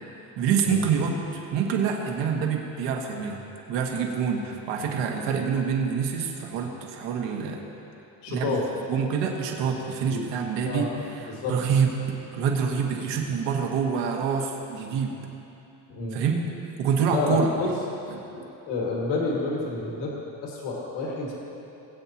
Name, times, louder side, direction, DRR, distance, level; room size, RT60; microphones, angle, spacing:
voice 1, 0.4-3.4 3.7-7.6 8.3-8.5 8.9-10.9 11.1-11.9 12.3-15.1 16.1-16.4 16.8-17.5 18.1-18.2, right 6 dB, 85° right, 1 dB, 1.5 m, -26 dB
voice 2, 8.2-8.6 10.1-10.2 10.6-10.9 11.3-11.6 15.9-16.2 17.1-17.7 18.3-20.1 20.4-21.3, left 3 dB, 75° left, -3 dB, 2.2 m, -29 dB
20.0 x 8.4 x 3.0 m, 2.9 s
cardioid pair, 140°, 42 cm